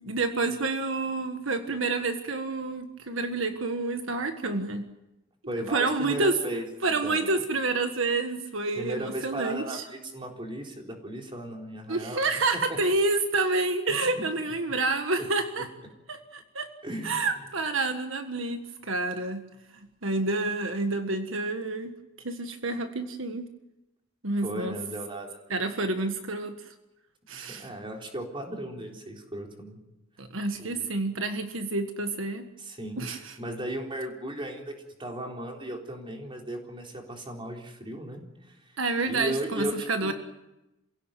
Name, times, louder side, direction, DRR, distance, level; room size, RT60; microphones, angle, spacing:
voice 1, 0.0-4.9 5.7-6.3 6.8-9.8 11.9-15.7 16.1-16.7 17.0-19.5 20.0-21.9 22.2-23.5 24.2-24.8 25.5-26.5 27.3-27.7 30.2-32.4 33.0-33.4 38.8-40.1, right 3 dB, 75° right, 6 dB, 1.6 m, -28 dB
voice 2, 5.5-6.7 7.0-7.3 8.8-12.2 12.7-12.8 13.9-14.2 15.6-15.7 16.8-17.3 24.4-25.4 27.4-29.8 30.6-31.0 32.6-33.0 33.4-38.2 38.5-38.6 39.1-40.1, right 1 dB, 25° right, 1 dB, 4.1 m, -36 dB
27.5 x 17.0 x 9.2 m, 0.97 s
head